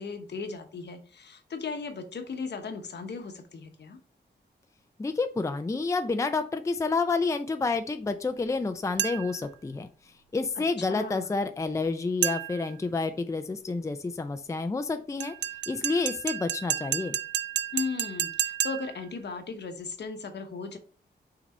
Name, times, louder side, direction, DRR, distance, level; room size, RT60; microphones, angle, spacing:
voice 1, 0.0-4.0 10.8-11.3 17.7-20.8, left 4 dB, 70° left, 6 dB, 1.1 m, -36 dB
voice 2, 5.0-9.9 10.3-15.3 15.7-17.2, left 3 dB, 15° left, 8 dB, 0.4 m, -29 dB
sound 1, 9.0-9.4 12.2-12.7 15.2-19.0, right 10 dB, 75° right, 0.4 m, -31 dB
6.0 x 3.9 x 4.2 m, 0.39 s
wide cardioid pair, 155°, 18 cm